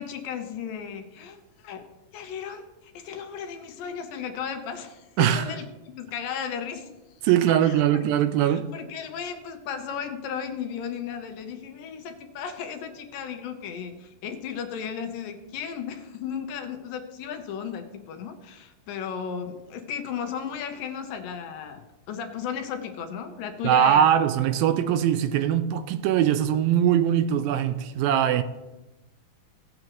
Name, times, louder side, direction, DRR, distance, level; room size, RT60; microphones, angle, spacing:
voice 1, 0.0-1.9 2.1-6.9 7.6-7.8 8.4-24.1, left 7 dB, 75° left, 2.4 m, -35 dB
voice 2, 5.2-5.5 7.2-8.7 23.6-28.4, right 10 dB, 80° right, 2.2 m, -21 dB
17.0 x 7.8 x 3.0 m
omnidirectional pair, 4.2 m